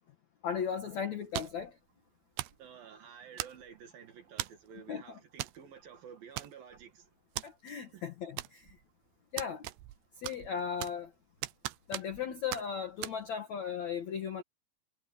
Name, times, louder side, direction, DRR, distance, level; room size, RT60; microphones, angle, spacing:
voice 1, 0.4-1.7 4.9-5.2 7.4-8.7 9.3-9.7 10.2-11.1 11.9-14.4, left 7 dB, 75° left, 1.6 m, -36 dB
sound 1, 1.3-1.7 2.4-2.6 3.4-3.8 4.4-4.7 5.4-5.6 5.9-6.0 6.4-6.8 7.4-7.5 8.4-8.8 9.4-10.0 10.2-11.1 11.4-12.2 12.5-12.7 13.0-13.2, right 17 dB, 80° right, 2.5 m, -39 dB
voice 2, 2.6-7.1 7.9-8.1, right 7 dB, 60° right, 2.9 m, -51 dB
omnidirectional pair, 5.8 m